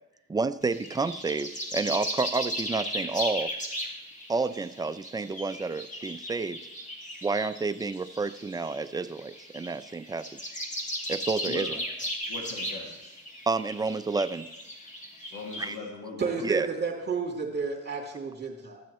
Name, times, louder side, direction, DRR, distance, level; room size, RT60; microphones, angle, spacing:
voice 1, 0.3-3.5 4.3-6.6 7.2-10.5 11.1-11.8 13.5-14.5 15.6-15.8 16.4-16.7, right 4 dB, 15° right, 11 dB, 0.4 m, -30 dB
sound 1, 0.6-15.8, equal, 25° left, 2.0 m, -36 dB
voice 2, 11.4-11.8 12.1-13.1 15.3-16.4, left 3 dB, 70° left, -3 dB, 1.8 m, -40 dB
voice 3, 16.2-18.8, right 5 dB, 35° right, 0 dB, 2.6 m, -31 dB
14.5 x 7.5 x 3.1 m, 0.96 s
cardioid pair, 90°, 30 cm